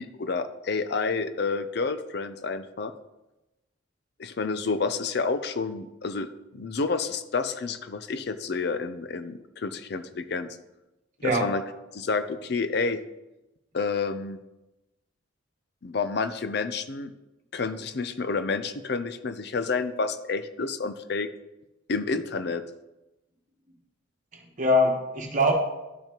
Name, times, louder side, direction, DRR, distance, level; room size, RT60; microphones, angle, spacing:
voice 1, 0.0-2.9 4.2-10.6 11.2-11.6 11.9-13.0 13.7-14.4 15.8-17.1 17.5-21.3 21.9-22.6, left 4 dB, 55° left, 11 dB, 0.5 m, -29 dB
voice 2, 24.3-25.5, left 1 dB, 40° right, 1 dB, 1.3 m, -23 dB
12.0 x 5.6 x 3.0 m, 1.0 s
head